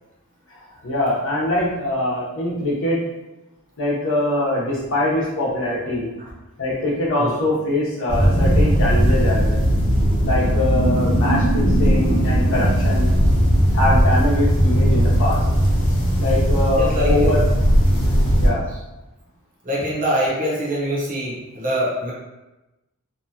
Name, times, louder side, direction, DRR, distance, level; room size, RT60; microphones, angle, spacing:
voice 1, 0.5-3.1 3.8-6.1 6.6-9.6 10.2-13.1 13.7-15.5 16.2-17.4 18.4-18.6, left 1 dB, 65° left, -5 dB, 0.8 m, -23 dB
sound 1, 8.1-18.5, equal, 35° left, 0.9 m, -18 dB
voice 2, 16.7-17.4 19.6-22.1, equal, 40° right, -5 dB, 0.8 m, -24 dB
2.8 x 2.3 x 2.7 m, 1.0 s
head